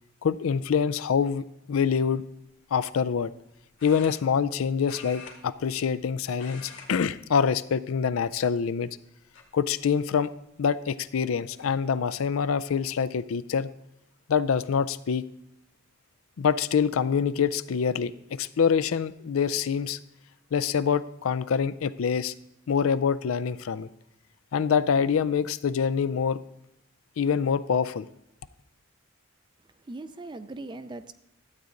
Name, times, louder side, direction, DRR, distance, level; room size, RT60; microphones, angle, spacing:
voice 1, 0.2-2.2 2.7-3.3 3.8-8.9 9.5-10.3 10.6-13.7 14.3-15.2 16.4-20.0 20.5-22.3 22.7-23.9 24.5-26.4 27.2-28.1, left 6 dB, 80° left, 16 dB, 0.4 m, -25 dB
sound 1, 1.8-2.1 3.8-4.6 4.8-6.0 6.3-6.9 7.2-7.4 8.2-8.8 9.3-9.4 10.9-11.0 11.3-11.7, left 4 dB, 65° left, 1.7 m, -46 dB
voice 2, 29.7-31.1, right 2 dB, 20° right, 12 dB, 0.4 m, -40 dB
12.0 x 8.3 x 3.8 m, 0.82 s
head